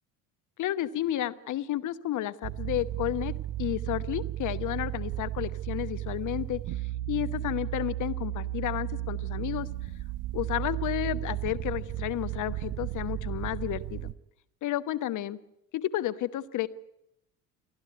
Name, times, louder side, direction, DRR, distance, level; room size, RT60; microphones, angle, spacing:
voice 1, 0.6-3.3 3.6-6.6 7.1-9.7 10.3-14.1 14.6-15.4 15.7-16.7, left 13 dB, 40° left, 14 dB, 1.1 m, -31 dB
sound 1, 2.4-14.1, right 15 dB, 45° right, 0.8 m, -34 dB
28.5 x 11.0 x 9.6 m, 0.83 s
figure-of-eight pair, 65°, 46 cm